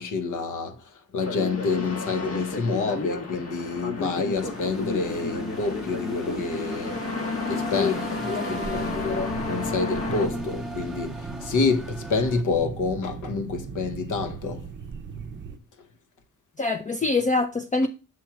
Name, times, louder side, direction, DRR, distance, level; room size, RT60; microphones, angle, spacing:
voice 1, 0.0-7.0 7.5-14.7, left 4 dB, 70° left, 0.9 m, -28 dB
sound 1, 1.2-10.3, left 3 dB, 45° left, 1.0 m, -32 dB
sound 2, 4.3-12.4, equal, ahead, 0.9 m, -38 dB
voice 2, 8.3-9.3 16.6-17.9, left 3 dB, 25° left, 0.5 m, -26 dB
sound 3, 8.6-15.6, right 5 dB, 35° right, 0.6 m, -37 dB
6.2 x 3.0 x 5.7 m
cardioid pair, 95°, 32 cm